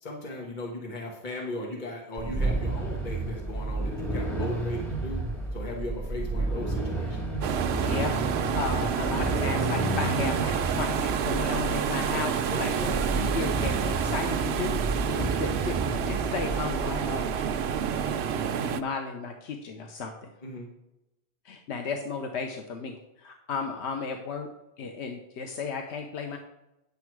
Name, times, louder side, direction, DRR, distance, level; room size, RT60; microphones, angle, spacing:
voice 1, 0.0-5.2 5.5-7.2 12.5-13.0 15.1-15.4 20.4-20.7, left 1 dB, 45° left, -1 dB, 1.6 m, -37 dB
sound 1, 2.2-18.2, right 2 dB, ahead, 1.9 m, -31 dB
sound 2, 7.4-18.8, right 8 dB, 75° right, 0.8 m, -29 dB
voice 2, 7.8-8.2 8.5-14.8 15.4-17.3 18.1-18.2 18.6-20.1 21.4-24.5 24.8-26.4, left 5 dB, 90° left, 4 dB, 1.1 m, -34 dB
9.5 x 7.0 x 4.7 m, 0.92 s
omnidirectional pair, 1.1 m